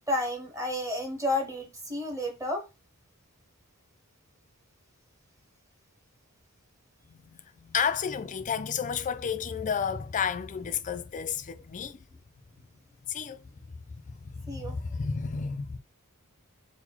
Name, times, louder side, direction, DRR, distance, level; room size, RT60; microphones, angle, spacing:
voice 1, 0.1-2.7 14.5-14.8, left 1 dB, 15° right, 0.8 m, -31 dB
voice 2, 7.1-12.0 13.1-13.4 13.9-15.8, left 6 dB, 35° left, 0.4 m, -32 dB
4.0 x 2.1 x 4.3 m
head